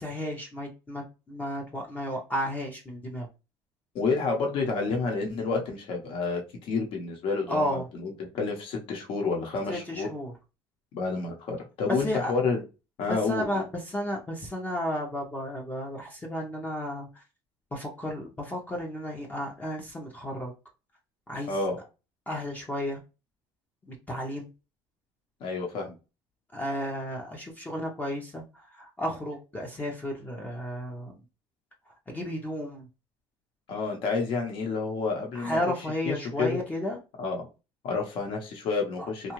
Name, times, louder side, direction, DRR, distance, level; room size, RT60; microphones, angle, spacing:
voice 1, 0.0-3.3 7.5-7.8 9.7-10.3 11.9-12.3 13.1-17.2 17.7-20.5 21.3-21.6 22.3-23.0 23.9-24.5 26.5-31.2 32.1-32.9 35.3-37.0 39.2-39.3, equal, 15° left, 0 dB, 0.6 m, -33 dB
voice 2, 3.9-10.1 10.9-12.6 13.0-13.7 21.5-21.8 25.4-26.0 33.7-35.6 36.0-36.6 37.2-37.5 37.8-39.3, left 4 dB, 60° left, 2 dB, 0.8 m, -29 dB
2.7 x 2.2 x 2.9 m, 0.30 s
cardioid pair, 125°, 10 cm